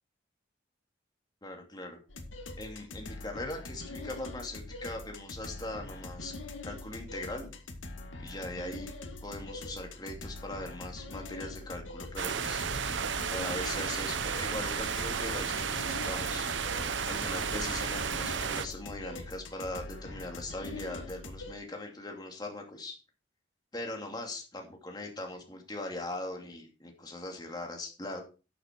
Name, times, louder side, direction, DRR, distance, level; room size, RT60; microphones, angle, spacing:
voice 1, 1.4-2.0 2.6-6.3 6.6-7.5 8.2-8.9 9.2-12.6 13.3-23.0 23.7-28.2, left 1 dB, 20° left, 2 dB, 2.5 m, -40 dB
sound 1, 2.1-21.5, left 2 dB, 90° left, 1.9 m, -43 dB
sound 2, 12.2-18.6, right 6 dB, 75° right, 0.8 m, -33 dB
12.0 x 6.8 x 4.6 m, 0.33 s
head